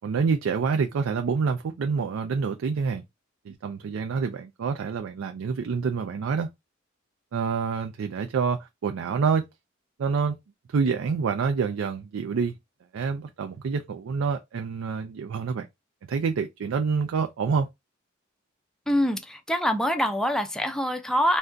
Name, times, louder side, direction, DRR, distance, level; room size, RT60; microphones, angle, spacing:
voice 1, 0.0-3.0 3.5-6.5 7.3-9.4 10.0-10.4 10.7-12.6 12.9-15.7 16.1-17.7, right 5 dB, 80° right, 0.4 m, -27 dB
voice 2, 18.9-21.4, equal, 5° left, 0.4 m, -25 dB
2.4 x 2.2 x 3.7 m
head